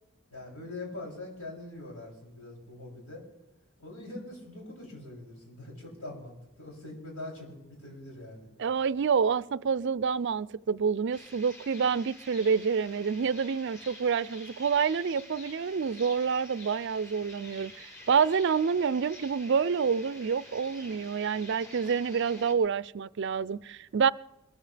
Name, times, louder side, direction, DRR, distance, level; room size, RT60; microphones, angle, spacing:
voice 1, 0.3-3.2 3.8-8.5, left 2 dB, 90° left, 7.1 m, -43 dB
voice 2, 8.6-24.1, right 6 dB, 55° right, 0.4 m, -28 dB
sound 1, 11.1-22.5, left 1 dB, 10° left, 4.0 m, -49 dB
22.5 x 14.5 x 3.4 m
head